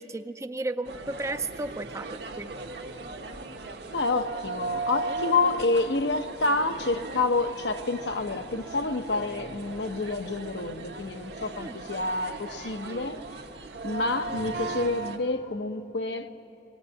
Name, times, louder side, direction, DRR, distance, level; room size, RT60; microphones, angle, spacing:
voice 1, 0.0-2.5 11.6-11.8, right 2 dB, 15° right, 0.4 m, -34 dB
sound 1, 0.8-15.2, right 3 dB, 75° right, 1.3 m, -37 dB
voice 2, 3.9-13.2 13.8-16.3, left 3 dB, 75° left, 0.8 m, -28 dB
20.0 x 17.0 x 8.5 m
head